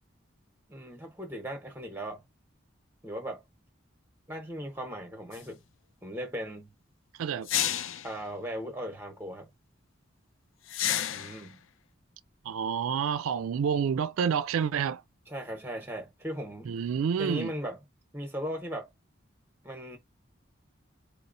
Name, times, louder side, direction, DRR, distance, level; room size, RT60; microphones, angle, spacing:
voice 1, 0.7-2.2 3.0-3.4 4.3-5.6 6.0-6.7 8.0-9.5 11.1-11.6 15.3-16.7 17.2-17.8 18.1-18.9 19.6-20.0, equal, 10° right, 0.8 m, -37 dB
sound 1, 5.3-5.4 7.5-8.1 10.7-11.5, left 11 dB, 70° left, 0.4 m, -30 dB
voice 2, 12.4-15.0 16.7-17.5, right 7 dB, 90° right, 0.3 m, -28 dB
4.1 x 2.0 x 2.6 m
head